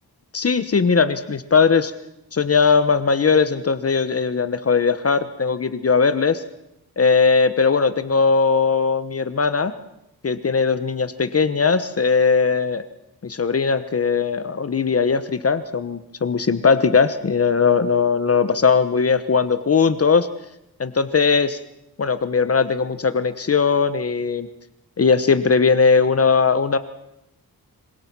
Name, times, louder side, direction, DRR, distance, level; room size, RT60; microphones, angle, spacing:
voice 1, 0.3-1.9 2.3-6.4 7.0-9.7 10.2-12.8 13.2-20.3 20.8-21.6 22.0-24.5 25.0-26.8, left 5 dB, 40° left, 12 dB, 1.1 m, -19 dB
26.5 x 24.5 x 6.2 m, 0.85 s
wide cardioid pair, 160°, 37 cm